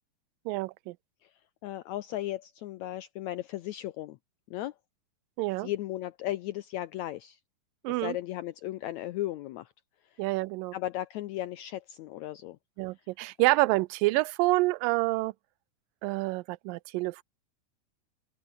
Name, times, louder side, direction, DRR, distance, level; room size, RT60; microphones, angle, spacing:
voice 1, 0.5-1.0 5.4-5.7 7.8-8.2 10.2-10.7 12.8-15.3 16.0-17.2, right 21 dB, 80° right, 2.2 m, -27 dB
voice 2, 1.6-4.2 4.5-4.8 5.6-7.4 7.9-9.7 10.0-10.2 10.7-12.6, left 14 dB, 80° left, 1.6 m, -36 dB
open air
omnidirectional pair, 4.0 m